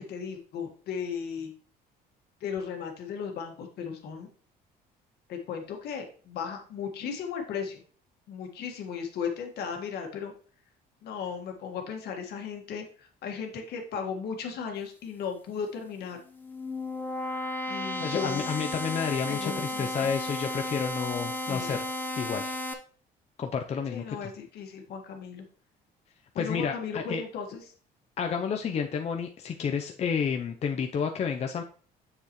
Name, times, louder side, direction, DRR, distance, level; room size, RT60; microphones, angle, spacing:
voice 1, 0.0-1.5 2.4-4.3 5.3-7.8 8.3-10.3 11.0-16.2 17.7-18.5 19.3-20.1 21.5-21.8 23.9-25.5 26.3-27.6, left 6 dB, 70° left, 3 dB, 1.7 m, -36 dB
sound 1, 16.2-22.7, left 2 dB, 10° left, 0.9 m, -34 dB
voice 2, 18.0-21.8 22.2-22.5 23.4-24.3 26.4-27.2 28.2-31.6, left 6 dB, 40° left, 4 dB, 0.6 m, -30 dB
7.0 x 6.9 x 3.1 m, 0.43 s
cardioid pair, 110°, 17 cm